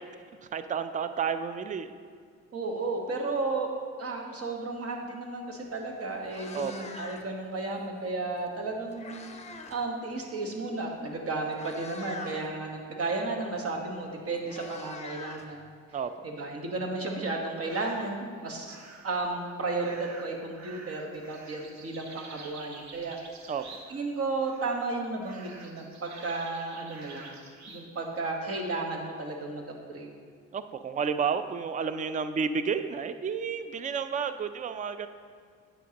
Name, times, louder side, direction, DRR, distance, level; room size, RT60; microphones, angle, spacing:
voice 1, 0.5-1.9 6.5-6.7 15.9-16.1 23.5-23.6 30.5-35.1, right 6 dB, 25° right, 11 dB, 0.4 m, -31 dB
voice 2, 2.5-3.7 4.0-9.3 9.7-15.6 16.2-18.8 19.0-23.2 23.9-27.4 27.7-30.1, right 3 dB, 50° right, 2 dB, 1.3 m, -33 dB
Meow, 5.7-5.8 6.1-7.4 8.5-9.8 10.1-10.4 11.1-11.2 11.5-12.4 13.8-13.9 14.1-16.0, left 4 dB, 20° left, 0.8 m, -44 dB
sound 1, 17.6-18.2 18.6-19.2 19.8-24.1 24.4-24.9 25.2-27.9, right 3 dB, 65° right, 1.1 m, -49 dB
9.2 x 7.9 x 2.9 m, 2.1 s
cardioid pair, 90°, 30 cm